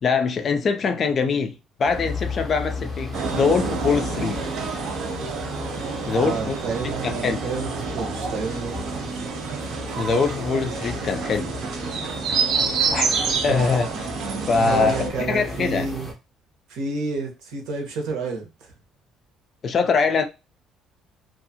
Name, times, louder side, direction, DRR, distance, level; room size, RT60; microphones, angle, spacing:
voice 1, 0.0-4.5 6.1-6.6 7.0-7.4 10.0-11.5 12.9-13.1 13.4-14.1 14.5-15.0 15.3-15.9 19.6-20.3, left 5 dB, 30° left, 0.3 m, -23 dB
sound 1, 1.8-16.1, left 2 dB, 5° right, 0.6 m, -34 dB
sound 2, 3.1-15.1, right 5 dB, 50° right, 0.5 m, -28 dB
voice 2, 6.2-9.2 13.5-13.6 14.6-16.1 16.7-18.5, right 4 dB, 80° right, 0.9 m, -30 dB
2.6 x 2.3 x 2.7 m
cardioid pair, 180°, 0 cm